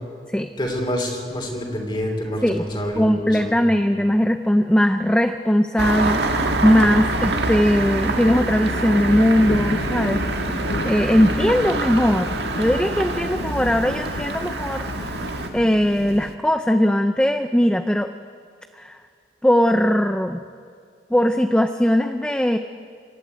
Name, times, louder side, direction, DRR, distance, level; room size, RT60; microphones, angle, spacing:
voice 1, 0.6-3.6, equal, 25° left, 1 dB, 3.2 m, -27 dB
voice 2, 3.0-10.2 10.8-18.1 18.7-19.0 19.4-20.4 21.1-22.6, equal, 5° left, 7 dB, 0.5 m, -19 dB
Engine starting, 5.8-15.5, right 2 dB, 70° right, 1.6 m, -26 dB
sound 1, 6.2-16.3, left 2 dB, 60° left, 0.8 m, -31 dB
26.5 x 12.0 x 9.1 m, 2.3 s
head